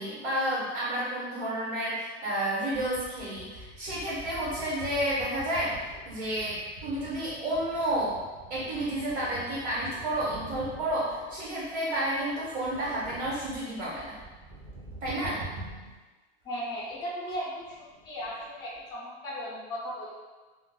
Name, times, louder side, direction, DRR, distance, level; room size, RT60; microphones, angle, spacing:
voice 1, 0.0-5.8 6.0-8.2 8.5-14.1 15.0-15.4, right 1 dB, 65° right, -8 dB, 1.3 m, -31 dB
sound 1, 2.7-16.0 16.4-16.5 16.8-16.9 17.3-17.4 17.6-18.9, right 2 dB, 40° right, 0.9 m, -46 dB
voice 2, 16.4-17.8 18.0-20.1, equal, 10° left, -6 dB, 0.4 m, -36 dB
3.7 x 2.3 x 2.2 m, 1.3 s
supercardioid pair, 160°, 32 cm